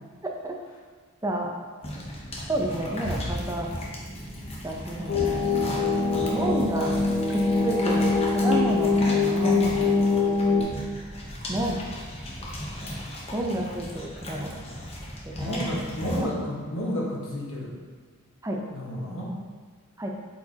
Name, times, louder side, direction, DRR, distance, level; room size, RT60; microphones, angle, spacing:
voice 1, 0.2-0.5 1.2-1.5 2.5-3.7 4.6-5.5 6.3-6.9 7.3-10.0 11.5-11.8 13.3-14.6 15.2-15.9 18.4-18.6 20.0-20.1, right 1 dB, 15° right, 0 dB, 0.6 m, -30 dB
sound 1, 1.8-16.3, equal, 25° left, 0.9 m, -36 dB
sound 2, 5.1-10.6, left 4 dB, 45° left, 1.2 m, -23 dB
voice 2, 5.7-6.3 15.4-17.8 18.7-19.3, equal, 60° left, -4 dB, 1.4 m, -32 dB
8.2 x 4.5 x 2.9 m, 1.5 s
head